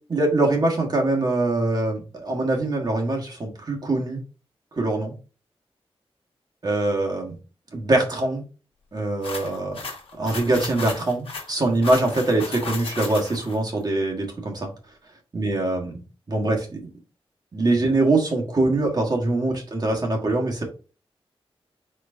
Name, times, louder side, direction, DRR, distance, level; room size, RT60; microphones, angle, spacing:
voice 1, 0.1-4.2 4.8-5.1 6.6-7.4 7.7-8.4 8.9-9.8 10.2-14.7 15.3-15.9 16.3-16.8 17.5-20.6, right 2 dB, 40° right, -1 dB, 1.3 m, -23 dB
sound 1, 9.2-13.6, left 3 dB, 65° left, 1.2 m, -35 dB
4.4 x 3.9 x 2.6 m, 0.34 s
wide cardioid pair, 125°, 10 cm